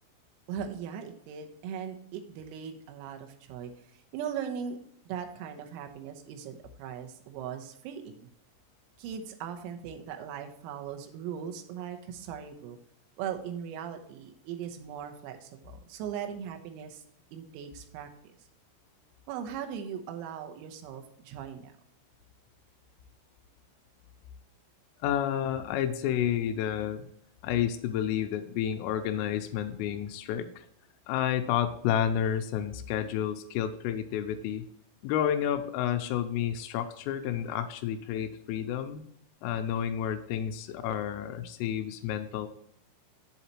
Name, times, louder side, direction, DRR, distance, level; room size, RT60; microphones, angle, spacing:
voice 1, 0.5-3.7 4.1-4.8 5.1-8.3 9.0-12.8 13.2-17.0 17.3-18.1 19.3-21.7, right 8 dB, 90° right, 5 dB, 3.7 m, -39 dB
voice 2, 25.0-27.1 27.4-30.7 31.1-34.6 35.0-39.0 39.4-42.5, left 10 dB, 85° left, 7 dB, 3.2 m, -30 dB
8.1 x 8.1 x 3.0 m, 0.70 s
omnidirectional pair, 6.0 m